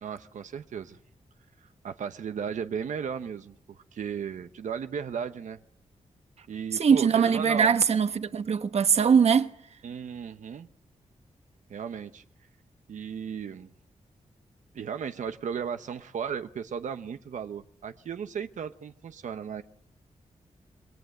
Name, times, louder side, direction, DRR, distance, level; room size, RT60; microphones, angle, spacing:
voice 1, 0.0-1.0 1.6-5.6 6.5-7.8 9.8-10.7 11.7-12.2 12.9-13.7 14.7-19.6, right 7 dB, 85° right, 0.9 m, -35 dB
voice 2, 6.8-9.5, right 6 dB, 60° right, 1.2 m, -21 dB
26.5 x 22.5 x 7.8 m
wide cardioid pair, 180°, 13 cm